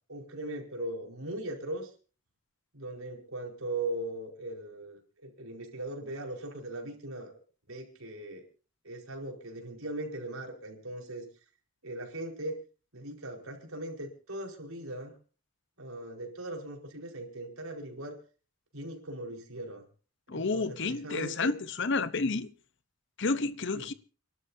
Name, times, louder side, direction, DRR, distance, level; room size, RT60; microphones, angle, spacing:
voice 1, 0.1-1.9 2.7-7.3 7.7-8.4 8.8-11.3 11.8-12.6 12.9-15.1 15.8-18.2 18.7-19.8 20.3-21.5 23.7-23.9, right 1 dB, 75° right, 4.8 m, -39 dB
voice 2, 20.3-22.5 23.2-23.9, left 3 dB, 55° left, 0.9 m, -30 dB
30.0 x 12.5 x 2.7 m
head